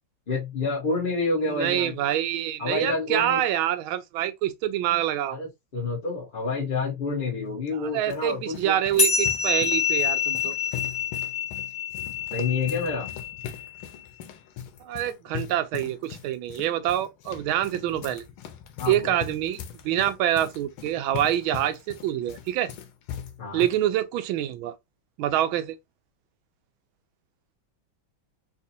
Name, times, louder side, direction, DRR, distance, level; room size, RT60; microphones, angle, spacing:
voice 1, 0.3-1.9 2.6-3.4 5.3-8.8 12.3-13.1 18.8-19.2 23.4-23.6, left 3 dB, 30° left, 1.1 m, -28 dB
voice 2, 1.4-5.4 7.7-10.5 14.8-18.2 18.9-19.6 19.8-22.7 23.5-24.7 25.2-25.7, right 12 dB, 80° right, 1.4 m, -26 dB
sound 1, 7.7-23.8, left 9 dB, 85° left, 1.5 m, -40 dB
sound 2, 9.0-13.8, left 6 dB, 55° left, 0.4 m, -27 dB
4.1 x 2.4 x 2.7 m
omnidirectional pair, 2.2 m